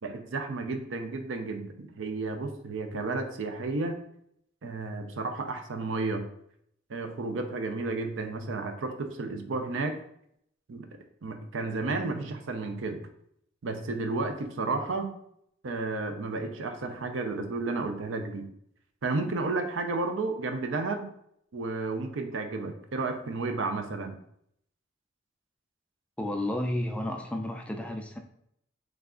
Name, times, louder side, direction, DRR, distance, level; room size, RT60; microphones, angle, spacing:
voice 1, 0.0-4.0 4.6-6.2 6.9-10.0 10.7-10.9 11.2-13.0 13.6-15.1 15.6-18.5 19.0-21.1 21.5-24.2, right 3 dB, 80° right, 6 dB, 0.5 m, -32 dB
voice 2, 26.2-28.2, left 1 dB, 5° left, 3 dB, 0.3 m, -32 dB
3.3 x 2.3 x 3.6 m, 0.71 s
head